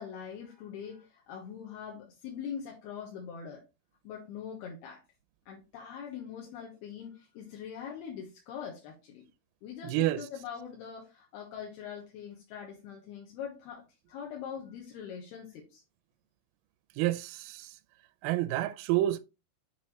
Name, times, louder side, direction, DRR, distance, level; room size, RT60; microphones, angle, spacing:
voice 1, 0.0-3.6 4.0-5.0 5.5-9.2 9.6-13.8 14.1-15.8, left 7 dB, 80° left, 3.0 m, -42 dB
voice 2, 9.8-10.2 17.0-17.7 18.2-19.2, right 15 dB, 85° right, 2.1 m, -29 dB
7.4 x 4.4 x 3.1 m
omnidirectional pair, 4.6 m